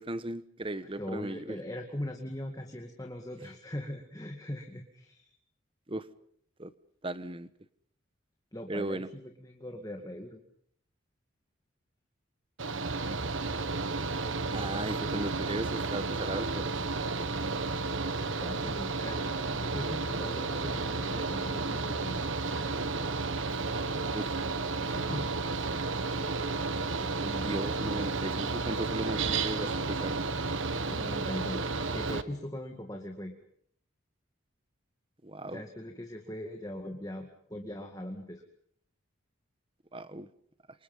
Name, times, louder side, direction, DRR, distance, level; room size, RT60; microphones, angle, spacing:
voice 1, 0.0-1.6 5.9-6.1 6.6-6.7 7.0-7.5 8.7-9.1 14.5-16.7 24.1-24.4 27.4-30.2 35.2-35.6 39.9-40.3, right 1 dB, 25° right, 13 dB, 1.2 m, -36 dB
voice 2, 1.0-5.3 8.5-10.4 18.4-22.7 24.8-25.3 27.0-27.6 27.9-28.5 30.9-33.3 35.5-38.4, left 1 dB, 20° left, 3 dB, 2.2 m, -40 dB
Mechanical fan, 12.6-32.2, right 3 dB, 75° right, 1.5 m, -32 dB
28.5 x 25.5 x 5.5 m, 0.65 s
head